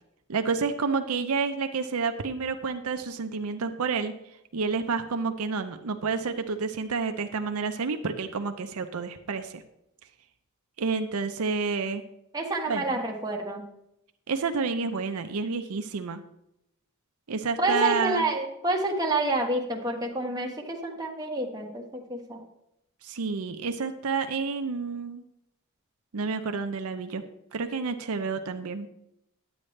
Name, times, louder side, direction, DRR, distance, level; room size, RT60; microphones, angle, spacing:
voice 1, 0.3-4.1 4.5-9.6 10.8-12.0 12.7-12.9 14.3-16.2 17.3-18.3 23.0-25.2 26.1-27.2 27.5-28.9, right 4 dB, 80° right, 8 dB, 0.6 m, -29 dB
voice 2, 12.3-13.6 17.6-22.4, right 2 dB, 20° right, 0 dB, 1.4 m, -28 dB
9.9 x 8.8 x 3.2 m, 0.82 s
head